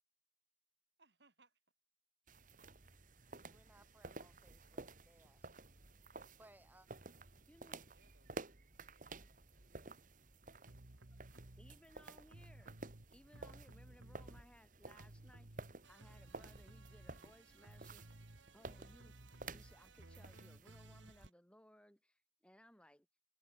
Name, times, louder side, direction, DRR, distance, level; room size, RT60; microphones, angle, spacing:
voice 1, 1.0-1.6 5.4-6.1 7.9-10.2, right 3 dB, 65° right, 6.5 m, -75 dB
sound 1, 2.3-21.3, right 3 dB, 45° right, 2.0 m, -54 dB
voice 2, 3.5-5.5 6.3-6.9, right 1 dB, 10° right, 3.1 m, -66 dB
voice 3, 7.5-8.1 11.6-12.7 13.1-19.2 19.5-23.1, equal, 5° left, 5.3 m, -65 dB
sound 2, 10.7-11.8 12.3-14.7 15.0-21.3, right 1 dB, 85° right, 2.0 m, -58 dB
head